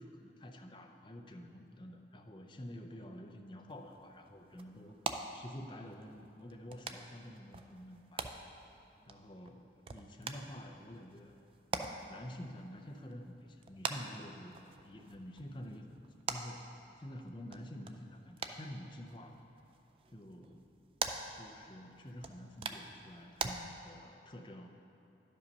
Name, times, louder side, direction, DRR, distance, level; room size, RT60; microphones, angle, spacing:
voice 1, 0.0-5.0 5.3-8.4 9.1-9.6 9.9-11.4 11.9-16.0 16.3-16.6 17.0-19.4 20.1-20.6 21.3-24.7, equal, 25° left, 3 dB, 0.6 m, -49 dB
sound 1, 3.7-23.5, right 4 dB, 30° right, 0.4 m, -45 dB
11.0 x 5.3 x 5.4 m, 2.9 s
head